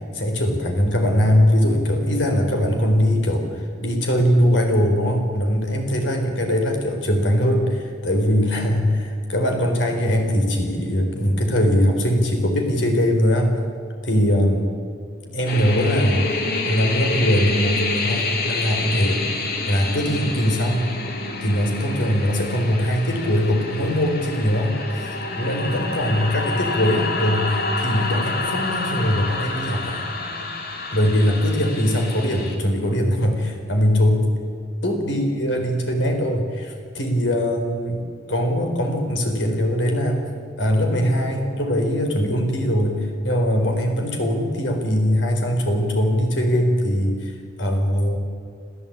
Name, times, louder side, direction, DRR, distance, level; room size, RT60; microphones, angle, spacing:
voice 1, 0.1-13.6 14.0-14.7 15.3-16.3 16.6-20.9 21.4-30.0 30.9-34.2 34.8-38.0 38.3-40.3 40.6-48.2, equal, 70° left, 4 dB, 4.2 m, -21 dB
sound 1, 15.5-32.6, left 3 dB, 55° left, 2.8 m, -28 dB
26.5 x 14.5 x 8.8 m, 2.3 s
head